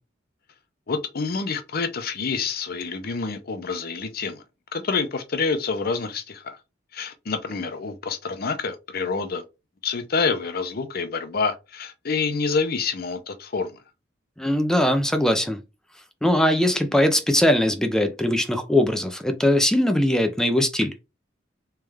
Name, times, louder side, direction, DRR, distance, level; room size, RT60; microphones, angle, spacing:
voice 1, 0.9-4.4 4.7-6.6 6.9-9.4 9.8-13.7, left 4 dB, 55° left, 0.7 m, -27 dB
voice 2, 14.4-15.6 16.2-20.9, left 1 dB, 5° left, 0.5 m, -21 dB
3.4 x 3.2 x 3.4 m
head